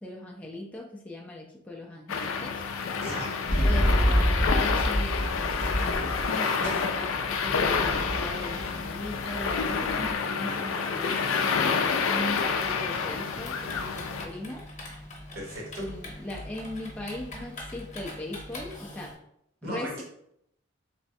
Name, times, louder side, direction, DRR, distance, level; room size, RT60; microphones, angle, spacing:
voice 1, 0.0-2.6 3.6-11.8 12.1-14.6 15.8-19.1 19.6-20.0, left 1 dB, 5° left, -2 dB, 0.4 m, -39 dB
sound 1, 2.1-14.3, left 5 dB, 80° left, 0.4 m, -28 dB
voice 2, 2.9-3.4 15.3-15.9 19.6-20.0, equal, 50° right, -3 dB, 1.0 m, -36 dB
sound 2, 3.5-6.3 6.6-10.1, equal, 65° right, 1.5 m, -28 dB
Typing, 12.3-19.1, left 1 dB, 35° left, 0.9 m, -43 dB
3.3 x 3.0 x 2.7 m, 0.76 s
head